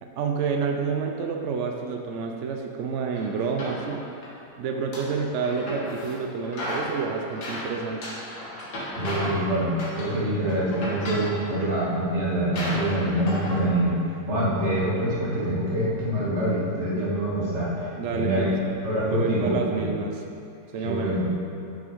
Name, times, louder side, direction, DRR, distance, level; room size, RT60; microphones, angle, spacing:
voice 1, 0.0-4.0 4.6-8.1 17.9-18.6 19.1-20.2 20.7-21.1, right 5 dB, 75° right, 2 dB, 0.6 m, -29 dB
sound 1, 3.1-4.3 4.7-6.2 6.4-9.5 9.7-10.2 10.5-11.6 12.1-12.2 12.5-13.6, left 1 dB, 60° left, 2.0 m, -35 dB
voice 2, 9.0-14.0 14.3-17.7 18.1-18.5 18.8-19.9 20.8-21.2, right 1 dB, 40° right, -8 dB, 2.2 m, -25 dB
7.7 x 6.1 x 5.2 m, 2.7 s
omnidirectional pair, 2.0 m